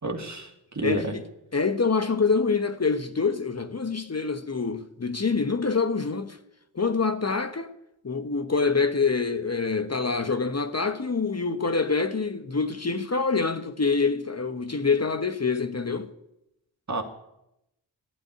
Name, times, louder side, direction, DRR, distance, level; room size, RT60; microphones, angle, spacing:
voice 1, 0.0-1.1 16.9-17.0, right 2 dB, 35° right, 2.5 m, -30 dB
voice 2, 0.8-1.2 1.5-6.4 6.7-7.7 8.0-16.1, left 4 dB, 30° left, 1.2 m, -26 dB
12.0 x 9.1 x 9.5 m
cardioid pair, 45°, 47 cm